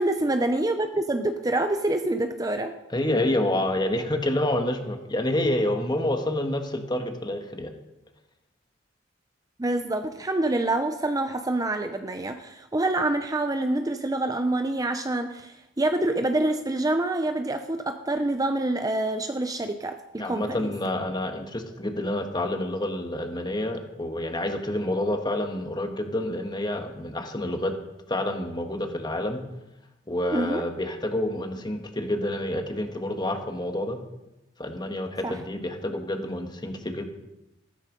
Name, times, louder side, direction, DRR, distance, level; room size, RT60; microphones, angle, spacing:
voice 1, 0.0-2.7 9.6-20.7 30.3-30.6 35.2-35.4, right 2 dB, 20° right, 7 dB, 0.7 m, -26 dB
voice 2, 2.9-7.7 20.2-27.7 28.1-29.4 30.1-34.0 34.6-37.1, left 1 dB, 25° left, 5 dB, 1.6 m, -28 dB
14.0 x 13.5 x 5.3 m, 0.95 s
head